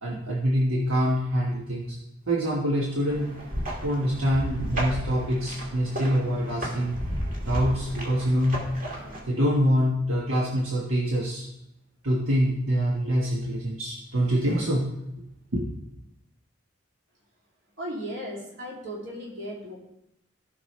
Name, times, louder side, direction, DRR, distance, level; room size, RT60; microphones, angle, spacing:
voice 1, 0.0-2.0 2.3-3.3 3.8-7.0 7.4-8.6 9.2-11.5 12.0-14.8 15.5-15.6, equal, 80° right, -4 dB, 1.5 m, -25 dB
sound 1, 3.1-9.2, equal, 40° right, 2.0 m, -33 dB
voice 2, 17.8-19.8, equal, 60° right, -3 dB, 2.8 m, -36 dB
15.5 x 5.9 x 3.3 m, 0.83 s
head